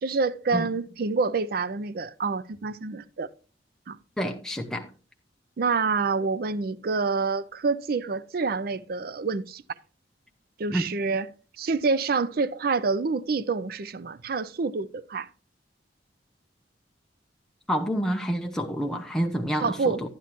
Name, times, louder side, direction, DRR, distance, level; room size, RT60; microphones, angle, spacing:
voice 1, 0.0-3.3 3.9-4.0 5.6-9.6 10.6-11.3 11.6-15.3 19.6-20.0, right 4 dB, 55° right, 0.4 m, -27 dB
voice 2, 4.2-4.9 10.7-10.8 17.7-20.0, equal, 5° left, 0.7 m, -28 dB
11.0 x 10.0 x 2.9 m
head